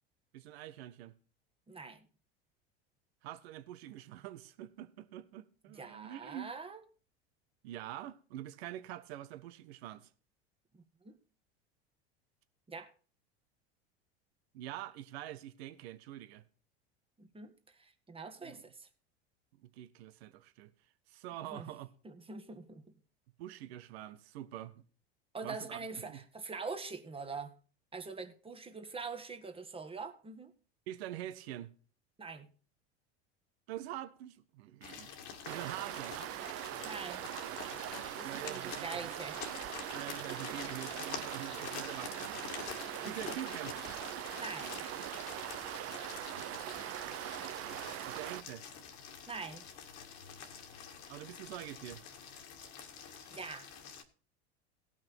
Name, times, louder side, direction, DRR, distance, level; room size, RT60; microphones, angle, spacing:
voice 1, 0.3-1.1 3.2-6.5 7.6-10.1 14.5-16.4 18.4-18.6 19.6-20.7 21.1-21.9 23.4-24.8 25.4-26.2 30.9-31.7 33.7-35.1 35.5-36.2 38.2-38.9 39.9-42.4 43.0-43.7 48.1-48.6 51.1-52.0, right 13 dB, 70° right, 1.2 m, -45 dB
voice 2, 1.7-2.1 5.8-6.8 10.7-11.2 12.7-12.9 17.2-18.9 21.5-21.7 22.0-22.8 25.3-27.5 27.9-30.5 32.2-32.5 36.8-37.3 38.2-39.4 43.0-43.2 44.4-44.8 49.3-49.7 53.3-53.7, right 4 dB, 15° right, 1.6 m, -44 dB
sound 1, 34.8-54.0, left 7 dB, 55° left, 2.2 m, -47 dB
sound 2, 35.4-48.4, right 13 dB, 45° right, 0.8 m, -41 dB
17.5 x 6.0 x 4.6 m
hypercardioid pair, 90°, 33 cm